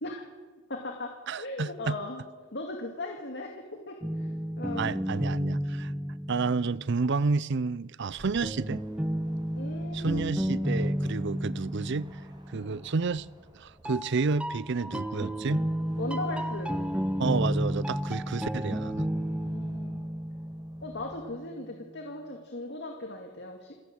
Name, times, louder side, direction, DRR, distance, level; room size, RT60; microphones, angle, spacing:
voice 1, 0.7-2.2 2.5-4.3 4.6-5.0 9.5-10.3 12.5-12.8 16.0-16.7 19.4-20.0 20.8-23.7, left 2 dB, 60° left, 2.3 m, -38 dB
voice 2, 1.3-2.0 4.8-5.9 6.3-8.8 9.9-12.1 12.5-13.3 13.5-15.6 17.2-19.1, right 4 dB, 60° right, 0.6 m, -30 dB
sound 1, 4.0-7.1 8.4-13.0 13.8-21.5, equal, 5° right, 0.7 m, -32 dB
sound 2, 8.0-21.2, right 1 dB, 20° right, 3.7 m, -55 dB
28.0 x 11.0 x 8.8 m
head